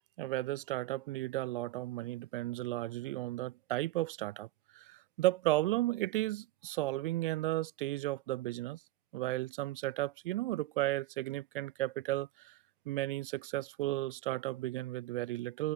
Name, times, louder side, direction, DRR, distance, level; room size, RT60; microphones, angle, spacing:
voice 1, 0.2-4.5 4.7-8.8 9.1-12.5 12.8-15.7, right 16 dB, 35° right, 5.1 m, -34 dB
figure-of-eight pair, 120°, 43 cm